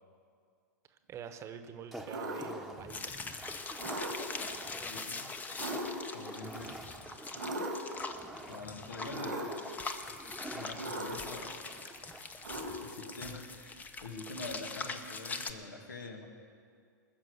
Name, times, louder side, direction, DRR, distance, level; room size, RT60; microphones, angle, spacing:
voice 1, 0.9-3.0 9.0-9.1, right 7 dB, 30° right, 9 dB, 1.0 m, -45 dB
sound 1, 1.9-12.9, right 1 dB, ahead, 1.1 m, -48 dB
sound 2, 2.1-2.7 3.8-4.5 5.6-6.3 7.4-8.0 9.1-9.7 10.7-11.4 12.4-13.2, right 1 dB, 90° right, 1.6 m, -39 dB
sound 3, 2.9-15.5, left 4 dB, 15° left, 0.8 m, -43 dB
voice 2, 4.9-5.3 6.1-6.7 8.4-9.6 10.5-11.6 12.8-16.3, left 3 dB, 80° left, 4 dB, 1.9 m, -45 dB
20.0 x 7.0 x 7.9 m, 2.2 s
hypercardioid pair, 105°, 10 cm